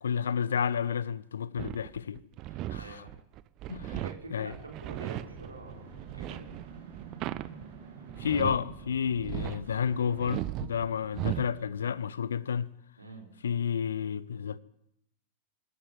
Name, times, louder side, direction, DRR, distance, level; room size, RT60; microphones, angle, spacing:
voice 1, 0.0-2.2 2.7-2.9 3.7-4.0 4.3-4.5 8.2-12.7 13.4-14.6, left 7 dB, 70° left, 0.8 m, -31 dB
sound 1, 1.6-8.9 9.2-9.8 10.2-11.7, right 14 dB, 40° right, 0.9 m, -37 dB
voice 2, 2.7-3.1 4.0-6.5 13.0-13.3, right 3 dB, 80° right, 4.6 m, -46 dB
sound 2, 5.1-10.3, right 4 dB, 60° right, 7.9 m, -48 dB
25.0 x 14.0 x 7.9 m
figure-of-eight pair, 90°, 0 cm